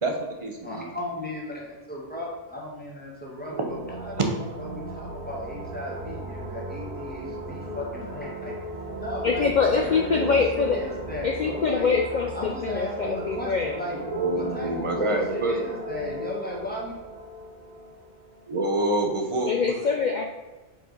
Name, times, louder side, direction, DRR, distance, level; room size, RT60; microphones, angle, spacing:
voice 1, 0.0-0.8 13.9-15.6 18.5-19.5, right 2 dB, 30° right, 3 dB, 0.9 m, -27 dB
voice 2, 0.6-4.2 4.6-12.0 12.3-14.0 14.3-16.9, left 1 dB, 10° left, -4 dB, 1.7 m, -35 dB
sound 1, 3.4-19.0, right 1 dB, 55° right, 1.1 m, -37 dB
voice 3, 9.2-10.9 11.2-13.8 19.5-20.2, left 5 dB, 50° left, 3 dB, 0.6 m, -24 dB
5.0 x 4.6 x 5.3 m, 1.2 s
omnidirectional pair, 1.1 m